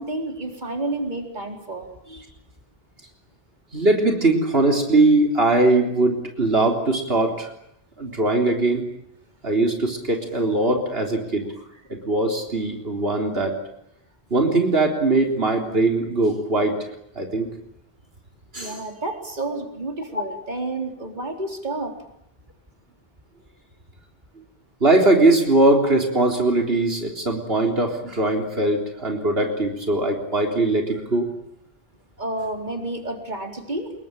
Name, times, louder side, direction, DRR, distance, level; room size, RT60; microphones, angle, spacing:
voice 1, 0.0-2.3 18.6-21.9 32.2-33.9, right 2 dB, 45° right, 4 dB, 4.2 m, -30 dB
voice 2, 3.7-7.5 8.0-8.8 9.4-11.5 11.9-13.6 14.3-16.8 17.2-17.5 18.5-18.8 20.1-20.2 24.8-31.3, right 2 dB, 70° right, 3 dB, 4.1 m, -20 dB
27.0 x 22.5 x 8.9 m, 0.77 s
omnidirectional pair, 1.0 m